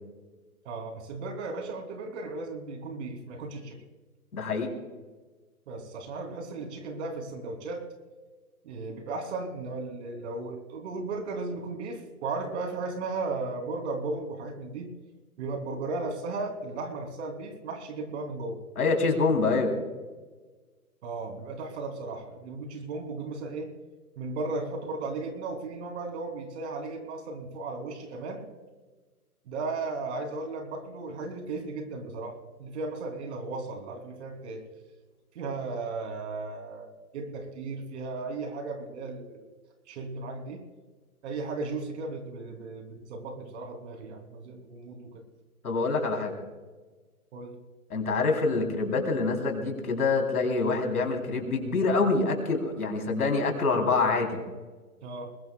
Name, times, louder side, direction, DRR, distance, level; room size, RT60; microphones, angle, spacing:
voice 1, 0.6-3.8 5.7-7.8 8.6-14.9 15.4-18.6 21.0-23.7 24.2-28.5 29.5-32.3 32.6-34.6 35.3-39.4 39.9-40.6 41.2-45.2 47.3-47.5 55.0-55.3, right 3 dB, 50° right, 4 dB, 3.4 m, -35 dB
voice 2, 4.3-4.7 18.8-19.7 45.6-46.3 47.9-54.4, left 3 dB, 80° left, 3 dB, 3.9 m, -26 dB
21.5 x 21.0 x 2.4 m, 1.3 s
hypercardioid pair, 135°, 44 cm